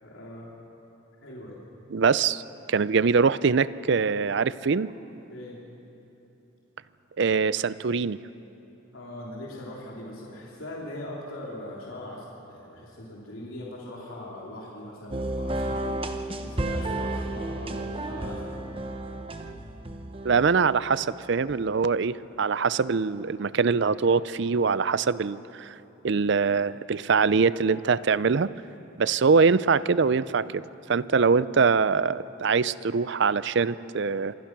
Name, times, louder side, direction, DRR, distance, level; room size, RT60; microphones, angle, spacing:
voice 1, 0.0-0.5 1.2-1.7 5.3-5.6 8.9-16.0 16.4-18.7, left 1 dB, 75° left, -4 dB, 3.4 m, -40 dB
voice 2, 1.9-2.4 2.7-4.9 7.2-8.2 20.2-25.7 26.0-28.5 29.0-34.3, right 5 dB, 55° right, 17 dB, 0.5 m, -23 dB
sound 1, 15.1-21.6, right 1 dB, 25° right, 0.9 m, -32 dB
26.5 x 20.5 x 6.1 m, 3.0 s
head